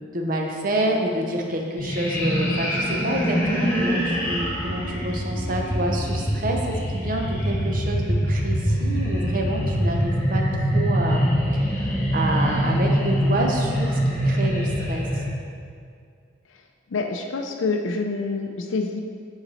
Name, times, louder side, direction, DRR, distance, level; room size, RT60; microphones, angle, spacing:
voice 1, 0.1-11.3 11.5-14.0 14.2-15.0, right 1 dB, 45° right, 1 dB, 0.7 m, -28 dB
sound 1, 1.8-15.3, equal, 10° left, 1.0 m, -24 dB
voice 2, 16.9-19.0, left 3 dB, 75° left, 3 dB, 0.4 m, -26 dB
6.9 x 4.0 x 4.1 m, 2.3 s
head